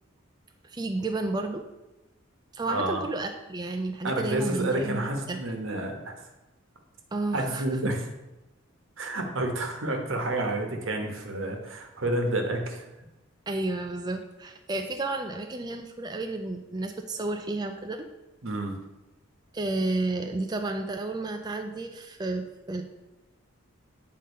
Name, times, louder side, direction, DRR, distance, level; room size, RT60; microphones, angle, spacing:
voice 1, 0.6-1.6 2.5-5.4 7.1-7.9 13.5-18.1 19.5-22.8, right 2 dB, 20° right, 4 dB, 0.4 m, -31 dB
voice 2, 2.7-3.0 4.0-6.2 7.3-8.0 9.0-12.8 18.4-18.7, right 1 dB, 75° right, 3 dB, 1.2 m, -29 dB
8.3 x 3.9 x 5.2 m, 1.0 s
head